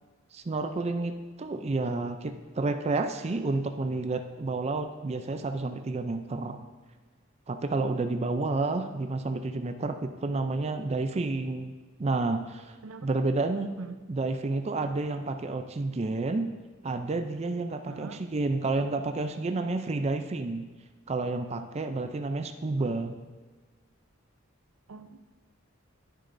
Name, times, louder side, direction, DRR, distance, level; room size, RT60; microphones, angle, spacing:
voice 1, 0.3-6.6 7.5-11.7 12.0-12.7 13.0-13.7 14.1-16.5 16.8-20.6 21.1-23.2, right 3 dB, 30° right, 7 dB, 0.4 m, -30 dB
voice 2, 12.8-13.1 13.8-14.0 17.9-18.3 22.8-23.0 24.9-25.2, right 4 dB, 90° right, 9 dB, 0.6 m, -43 dB
10.0 x 9.4 x 2.6 m, 1.3 s
head